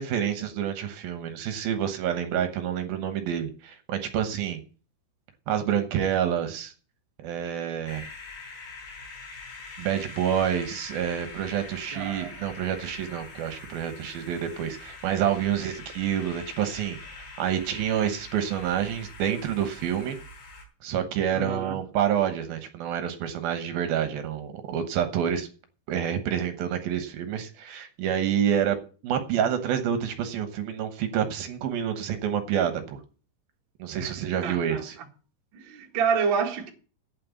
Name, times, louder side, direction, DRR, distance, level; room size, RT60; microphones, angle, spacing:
voice 1, 0.0-4.6 5.5-6.7 7.2-8.1 9.8-20.2 20.8-25.5 25.9-28.8 29.0-33.0 33.8-35.0, right 9 dB, 70° right, 2.5 m, -28 dB
sound 1, 7.9-20.7, left 3 dB, 75° left, 5.3 m, -44 dB
voice 2, 11.9-12.3 21.3-21.8 34.0-34.2 34.4-34.8 35.5-36.7, right 6 dB, 50° right, 1.4 m, -28 dB
8.7 x 7.6 x 8.2 m
omnidirectional pair, 5.1 m